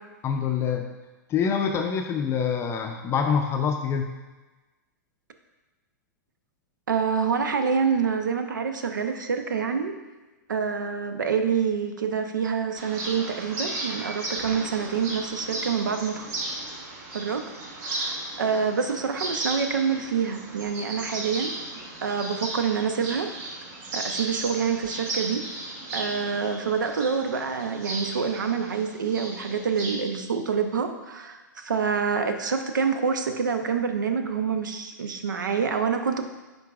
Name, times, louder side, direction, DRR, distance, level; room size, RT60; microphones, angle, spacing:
voice 1, 0.2-0.9 1.3-4.1, left 6 dB, 25° left, 4 dB, 0.5 m, -25 dB
voice 2, 6.9-9.9 10.5-16.3 17.1-17.4 17.8-21.5 22.0-23.3 23.9-25.4 25.9-36.2, right 6 dB, 85° right, 7 dB, 0.7 m, -27 dB
sound 1, 12.8-29.9, right 2 dB, 45° right, 1.3 m, -35 dB
10.5 x 4.0 x 2.4 m, 1.2 s
hypercardioid pair, 115°, 10 cm